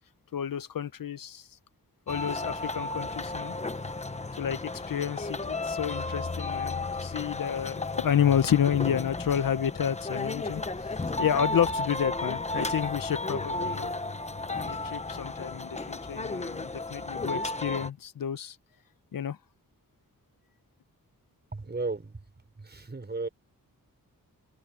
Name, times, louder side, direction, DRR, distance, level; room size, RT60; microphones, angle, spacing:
voice 1, 0.3-1.5 2.1-3.5 4.4-10.6 11.2-13.9 14.5-18.6 19.1-19.4, left 9 dB, 75° left, 0.9 m, -30 dB
sound 1, 2.1-17.9, left 2 dB, 20° left, 1.0 m, -33 dB
voice 2, 21.5-22.2 22.6-23.3, right 3 dB, 30° right, 5.5 m, -34 dB
wide cardioid pair, 145°, 34 cm